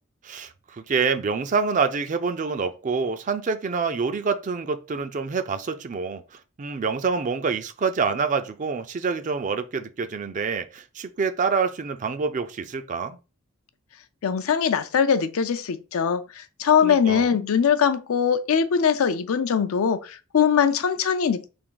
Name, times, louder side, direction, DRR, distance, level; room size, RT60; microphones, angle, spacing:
voice 1, 0.2-13.2 16.8-17.3, right 5 dB, 35° right, 0.4 m, -27 dB
voice 2, 14.2-21.5, left 7 dB, 70° left, 0.4 m, -22 dB
3.5 x 2.6 x 3.8 m
head